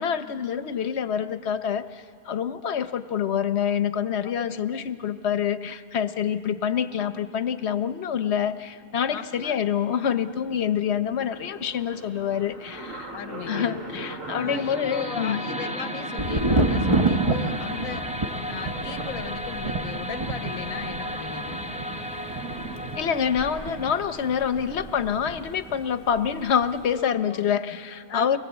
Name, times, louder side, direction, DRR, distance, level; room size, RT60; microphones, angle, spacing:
voice 1, 0.0-13.1 13.5-15.4 22.9-28.4, left 8 dB, 55° left, 11 dB, 1.1 m, -26 dB
voice 2, 4.2-4.8 9.1-9.6 13.1-13.8 14.3-18.0 18.4-21.6 26.9-27.4 28.1-28.4, left 8 dB, 90° left, 10 dB, 1.4 m, -37 dB
sound 1, 8.7-8.8 9.0-9.1 9.3-25.2, right 3 dB, 70° right, 2.6 m, -40 dB
sound 2, 14.5-25.5, left 1 dB, 5° right, 0.8 m, -36 dB
Thunder, 16.2-25.8 26.1-26.8, right 2 dB, 25° right, 1.0 m, -29 dB
29.5 x 22.5 x 8.1 m, 2.3 s
omnidirectional pair, 1.4 m